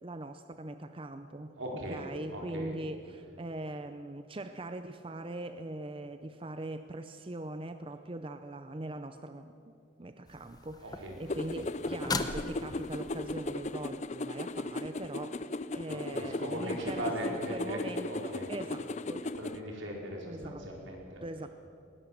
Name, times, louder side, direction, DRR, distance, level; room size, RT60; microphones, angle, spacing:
voice 1, 0.0-19.3 20.3-20.7 21.2-21.5, right 2 dB, 25° right, 9 dB, 0.6 m, -41 dB
voice 2, 1.6-2.0 2.3-2.7 10.8-11.1 15.8-17.8 18.1-18.4 19.3-21.2, right 1 dB, 75° right, 0 dB, 4.8 m, -39 dB
sound 1, 10.3-13.3 16.8-16.9, left 3 dB, 20° left, 0.9 m, -39 dB
sound 2, 11.3-19.6, left 2 dB, 35° left, 0.5 m, -37 dB
20.5 x 19.5 x 7.5 m, 2.6 s
head